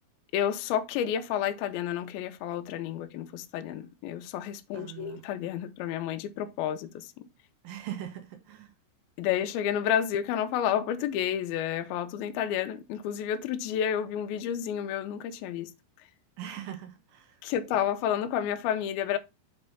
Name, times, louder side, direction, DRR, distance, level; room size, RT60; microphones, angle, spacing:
voice 1, 0.3-7.3 9.2-15.7 17.4-19.2, left 9 dB, 80° left, 2.3 m, -30 dB
voice 2, 4.7-5.2 7.6-8.7 16.4-17.4, right 11 dB, 70° right, 2.5 m, -41 dB
7.1 x 3.3 x 5.3 m
omnidirectional pair, 4.8 m